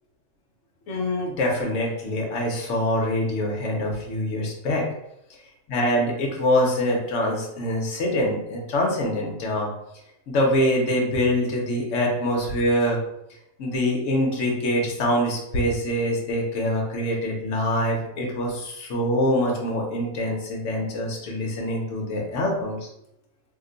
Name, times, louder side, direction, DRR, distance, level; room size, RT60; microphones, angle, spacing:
voice 1, 0.9-4.8 5.7-9.7 10.3-13.0 13.6-22.9, left 1 dB, 60° left, 0 dB, 0.9 m, -24 dB
2.9 x 2.1 x 3.8 m, 0.81 s
omnidirectional pair, 1.7 m